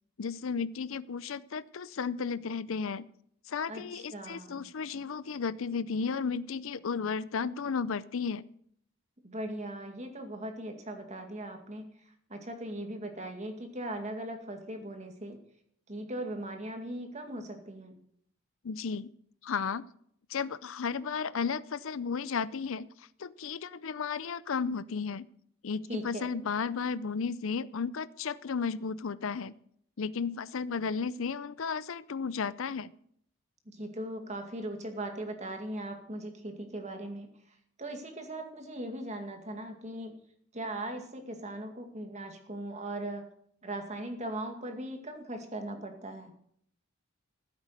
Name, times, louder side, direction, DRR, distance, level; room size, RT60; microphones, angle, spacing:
voice 1, 0.2-3.1 3.5-8.4 18.6-19.1 19.4-19.8 20.3-25.3 25.6-29.5 30.0-32.9, left 5 dB, 65° left, 17 dB, 0.5 m, -34 dB
voice 2, 3.7-4.7 9.2-11.9 12.3-15.4 15.9-18.0 25.9-26.3 33.7-37.3 37.8-40.2 40.5-43.2 43.6-46.3, right 1 dB, 30° right, 5 dB, 2.2 m, -39 dB
15.0 x 8.3 x 8.1 m, 0.67 s
head